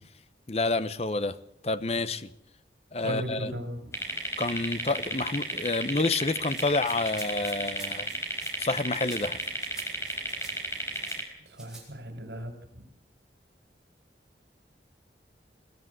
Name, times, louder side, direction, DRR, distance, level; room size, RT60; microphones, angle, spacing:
voice 1, 0.5-1.4 1.6-2.3 2.9-3.5 4.4-8.1 8.6-9.4, left 3 dB, 35° left, 13 dB, 0.9 m, -28 dB
voice 2, 3.0-3.8 11.5-12.8, equal, 80° right, 6 dB, 5.2 m, -37 dB
sound 1, 3.9-11.2, equal, 15° left, 4.6 m, -33 dB
Rattle (instrument), 6.5-11.2 11.5-11.8, right 4 dB, 5° right, 6.8 m, -48 dB
22.5 x 15.0 x 8.1 m, 0.80 s
head